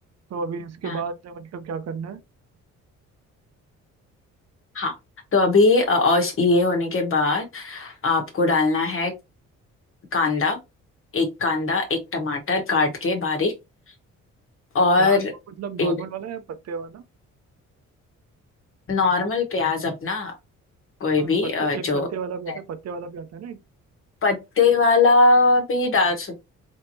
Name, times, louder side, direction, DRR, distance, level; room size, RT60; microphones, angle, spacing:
voice 1, 0.3-2.2 15.0-15.2 15.5-17.0 21.2-23.6, right 6 dB, 60° right, 0.7 m, -33 dB
voice 2, 5.3-9.1 10.1-10.6 11.1-13.5 14.7-15.3 15.8-16.0 18.9-20.3 21.0-22.1 22.5-22.6 24.2-26.4, left 3 dB, 45° left, 1.3 m, -21 dB
3.5 x 3.1 x 2.7 m
cardioid pair, 90°, 30 cm